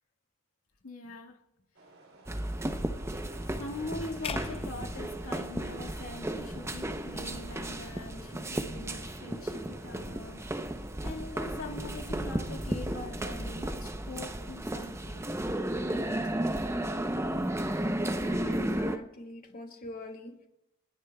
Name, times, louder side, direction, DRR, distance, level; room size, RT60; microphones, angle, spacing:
voice 1, 0.8-1.4 3.2-10.5 11.0-15.3 15.8-16.2, left 2 dB, 85° left, 1.9 m, -43 dB
sound 1, 1.7-13.8, right 2 dB, 75° right, 3.0 m, -56 dB
sound 2, 2.3-19.0, right 1 dB, 15° right, 0.7 m, -34 dB
sound 3, 4.2-6.5, left 3 dB, 25° left, 0.6 m, -40 dB
voice 2, 18.2-20.4, left 2 dB, 45° left, 2.5 m, -44 dB
30.0 x 10.0 x 2.3 m
head